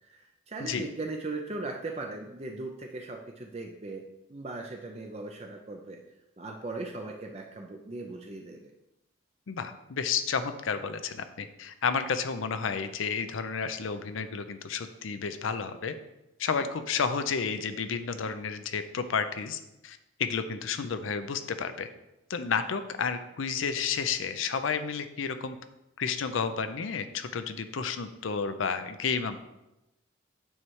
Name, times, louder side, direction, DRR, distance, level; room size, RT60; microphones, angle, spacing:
voice 1, 0.0-4.0 4.3-6.0 6.4-8.7, right 2 dB, 30° right, 2 dB, 0.5 m, -38 dB
voice 2, 9.5-15.9 16.4-21.9 22.3-25.6 26.0-29.4, left 6 dB, 80° left, 10 dB, 0.5 m, -31 dB
8.7 x 3.2 x 4.6 m, 0.93 s
head